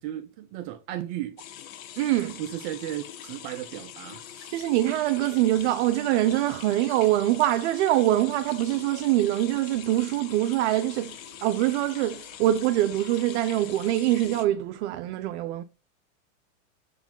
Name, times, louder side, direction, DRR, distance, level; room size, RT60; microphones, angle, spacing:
voice 1, 0.0-1.4 2.4-4.7, right 12 dB, 25° right, 0.3 m, -35 dB
sound 1, 1.4-14.5, left 11 dB, 70° left, 1.4 m, -44 dB
voice 2, 2.0-2.4 4.5-15.6, right 14 dB, 50° right, 0.7 m, -24 dB
7.0 x 4.8 x 3.8 m
supercardioid pair, 140°, 42 cm